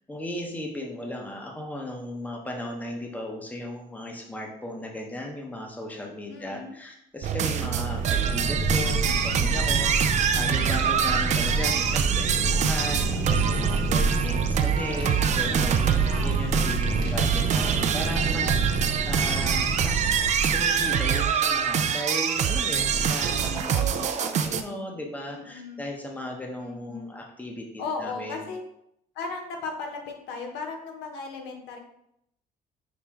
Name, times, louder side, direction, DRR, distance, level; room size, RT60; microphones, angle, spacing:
voice 1, 0.1-24.2 24.4-27.7 28.0-28.5, left 1 dB, 10° left, 1 dB, 0.7 m, -36 dB
voice 2, 6.3-6.7 15.4-16.6 17.0-17.5 23.3-25.0 25.3-25.8 26.6-27.1 27.8-28.6 29.1-31.8, left 4 dB, 90° left, 3 dB, 0.8 m, -37 dB
sound 1, 7.2-24.6, right 8 dB, 45° right, 0.4 m, -25 dB
Fire, 7.4-21.0, right 2 dB, 80° right, 1.0 m, -28 dB
5.9 x 2.1 x 3.5 m, 0.77 s
cardioid pair, 110°, 17 cm